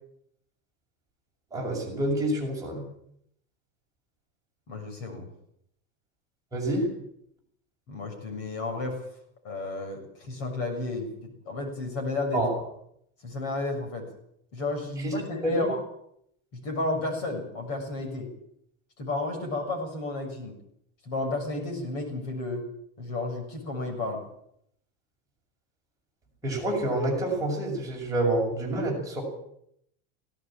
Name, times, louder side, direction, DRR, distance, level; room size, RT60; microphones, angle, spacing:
voice 1, 1.5-2.8 6.5-6.9 12.3-12.5 15.0-15.1 15.4-15.7 26.4-29.2, right 1 dB, 10° right, -2 dB, 6.4 m, -27 dB
voice 2, 4.7-5.3 7.9-9.0 9.4-11.1 11.5-12.5 13.2-14.1 14.5-15.8 16.6-18.3 19.0-20.6 21.1-22.6 23.0-24.2, left 2 dB, 45° left, 3 dB, 7.0 m, -32 dB
18.0 x 17.5 x 8.9 m, 0.73 s
cardioid pair, 165°, 34 cm